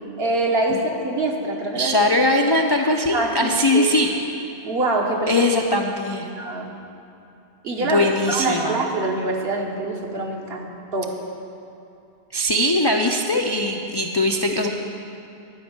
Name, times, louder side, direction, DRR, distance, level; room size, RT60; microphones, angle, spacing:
voice 1, 0.2-2.0 3.1-4.0 4.6-5.5 6.4-6.7 7.6-11.2, right 2 dB, 60° right, 1 dB, 1.4 m, -25 dB
voice 2, 1.8-4.1 5.3-6.3 7.9-8.8 12.3-14.7, left 1 dB, 40° left, 2 dB, 0.3 m, -20 dB
11.5 x 5.3 x 8.7 m, 2.7 s
omnidirectional pair, 1.2 m